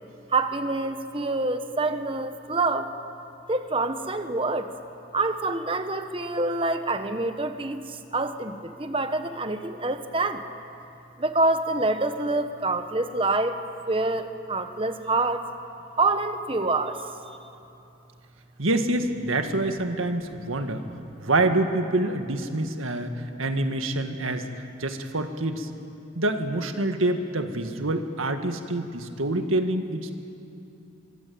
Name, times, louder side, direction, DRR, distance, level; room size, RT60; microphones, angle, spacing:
voice 1, 0.3-2.9 3.5-4.7 5.1-10.4 11.2-13.6 13.9-15.4 16.0-17.0, right 2 dB, 25° right, 8 dB, 1.2 m, -26 dB
voice 2, 18.6-20.8 21.2-24.4 24.8-25.7 26.2-30.1, right 2 dB, 90° right, 6 dB, 1.9 m, -26 dB
24.0 x 23.5 x 8.7 m, 2.8 s
head